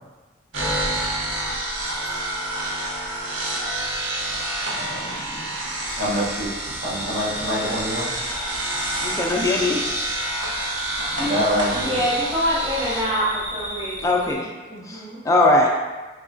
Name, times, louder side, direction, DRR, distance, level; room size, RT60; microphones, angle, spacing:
sound 1, 0.5-13.0, right 1 dB, 85° right, 0.6 m, -28 dB
voice 1, 4.6-5.6 6.0-8.1 11.0-12.0, equal, 65° right, -8 dB, 0.9 m, -27 dB
sound 2, 5.8-14.3, equal, 40° right, 0.5 m, -36 dB
voice 2, 9.0-9.8 14.0-14.5 14.9-15.7, left 2 dB, 15° left, -1 dB, 0.3 m, -20 dB
voice 3, 11.7-14.3 14.7-15.2, equal, 25° right, -10 dB, 1.2 m, -26 dB
3.1 x 3.0 x 2.5 m, 1.2 s
head